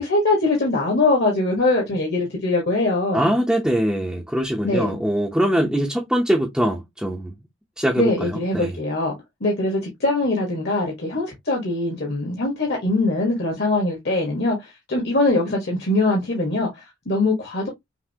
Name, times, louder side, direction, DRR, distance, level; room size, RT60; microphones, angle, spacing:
voice 1, 0.0-3.3 4.6-4.9 8.0-9.1 9.4-17.7, left 2 dB, 50° left, 1.3 m, -22 dB
voice 2, 3.1-7.3 7.8-8.8, equal, 5° right, 0.7 m, -22 dB
5.9 x 2.7 x 2.7 m
head